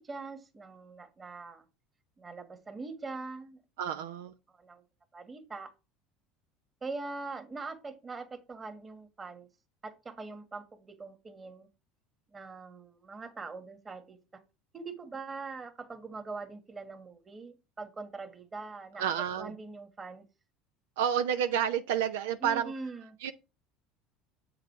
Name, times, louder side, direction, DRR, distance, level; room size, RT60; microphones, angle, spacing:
voice 1, 0.0-1.6 2.2-3.6 3.9-4.1 4.6-4.8 5.1-5.7 6.8-9.5 9.8-11.7 12.3-14.4 14.7-20.2 22.4-23.2, right 3 dB, 25° right, 1.6 m, -42 dB
voice 2, 3.8-4.3 19.0-19.5 21.0-22.7 23.2-23.3, right 9 dB, 85° right, 0.6 m, -30 dB
7.8 x 4.9 x 4.7 m
supercardioid pair, 90°, 0 cm